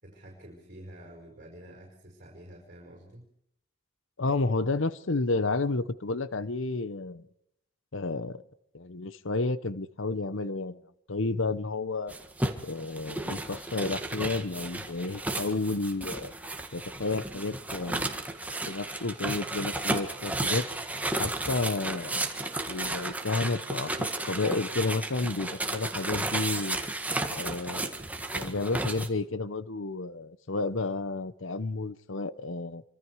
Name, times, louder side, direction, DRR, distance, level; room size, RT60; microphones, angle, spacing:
voice 1, 0.0-3.2, right 1 dB, 40° right, 5.5 m, -48 dB
voice 2, 4.2-7.2 7.9-8.4 8.7-10.8 11.1-12.1 12.6-16.3 16.7-18.1 18.7-20.7 21.2-22.2 22.7-26.8 27.3-28.0 28.3-32.8, left 3 dB, 65° left, 0.9 m, -31 dB
sound 1, 12.1-29.1, right 2 dB, 5° right, 1.7 m, -33 dB
26.5 x 25.0 x 4.8 m
head